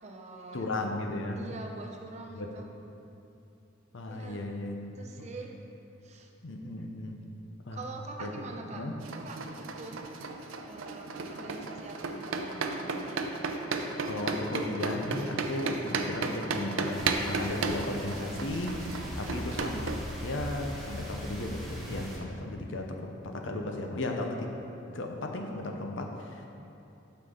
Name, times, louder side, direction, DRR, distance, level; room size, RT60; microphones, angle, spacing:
voice 1, 0.0-0.7 1.3-2.7 4.1-4.4 5.0-5.5 6.0-6.3 7.7-10.0 10.7-13.3, right 2 dB, 35° right, 1 dB, 0.6 m, -44 dB
voice 2, 0.5-1.4 2.3-2.5 3.9-5.3 6.4-7.2 7.7-7.8 8.2-8.3 8.7-8.9 14.1-24.5 24.9-26.5, left 1 dB, 75° left, 3 dB, 0.7 m, -35 dB
sound 1, 9.0-20.0, right 3 dB, 85° right, 0.5 m, -34 dB
sound 2, 16.9-22.2, equal, ahead, 1.0 m, -40 dB
7.9 x 5.8 x 3.8 m, 2.9 s
head